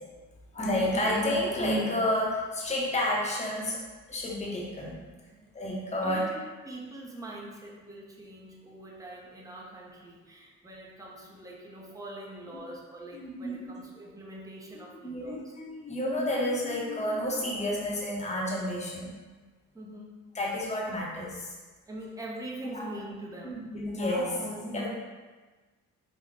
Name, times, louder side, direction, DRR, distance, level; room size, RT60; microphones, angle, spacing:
voice 1, 0.5-3.8 4.1-5.0 5.5-6.2 13.1-13.7 14.7-19.2 20.3-21.6 22.7-22.9 23.4-24.9, left 1 dB, 20° left, -4 dB, 0.8 m, -30 dB
voice 2, 5.9-15.6 19.7-20.1 21.9-23.6, right 1 dB, 10° right, -3 dB, 0.7 m, -43 dB
4.0 x 2.2 x 3.3 m, 1.3 s
cardioid pair, 90°, 32 cm